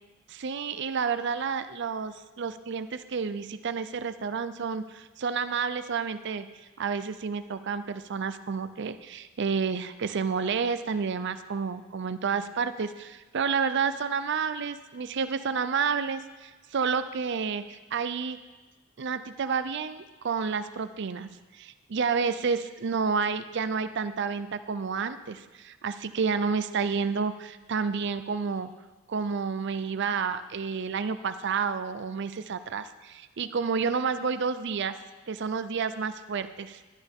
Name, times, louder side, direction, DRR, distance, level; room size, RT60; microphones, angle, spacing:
voice 1, 0.3-6.5 6.8-18.4 19.0-28.7 29.1-34.9 35.3-36.9, right 5 dB, 60° right, 11 dB, 0.5 m, -30 dB
16.0 x 11.0 x 3.6 m, 1.2 s
head